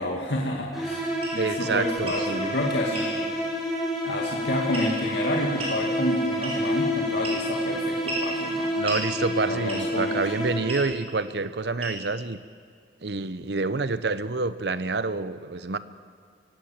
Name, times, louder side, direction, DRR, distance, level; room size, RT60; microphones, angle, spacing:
voice 1, 0.0-3.3 4.0-9.0 9.4-10.5, left 1 dB, 70° left, -1 dB, 2.4 m, -30 dB
sound 1, 0.7-10.9, equal, ahead, 6.9 m, -29 dB
sound 2, 1.2-1.4 2.0-2.3 2.9-3.1 4.7-5.1 5.6-5.8 6.4-6.8 7.2-7.6 8.1-8.3 8.9-9.1 9.7-10.0 10.7-10.9 11.8-12.1, right 2 dB, 35° right, 6.1 m, -34 dB
voice 2, 1.4-2.5 8.8-12.4 13.0-15.8, right 3 dB, 65° right, 14 dB, 0.9 m, -28 dB
23.5 x 17.5 x 7.4 m, 2.2 s
head